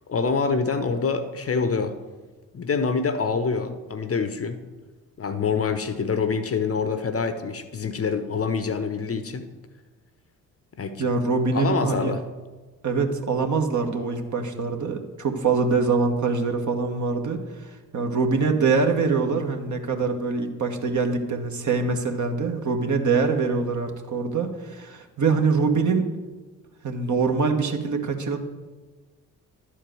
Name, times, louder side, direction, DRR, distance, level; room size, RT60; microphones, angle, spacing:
voice 1, 0.1-1.9 2.5-4.6 5.2-9.4 10.8-11.0 11.5-12.2, left 5 dB, 30° left, 9 dB, 0.9 m, -26 dB
voice 2, 11.0-12.1 12.8-26.1 26.8-28.4, right 4 dB, 40° right, 4 dB, 1.5 m, -24 dB
11.5 x 4.6 x 7.7 m, 1.3 s
hypercardioid pair, 45°, 43 cm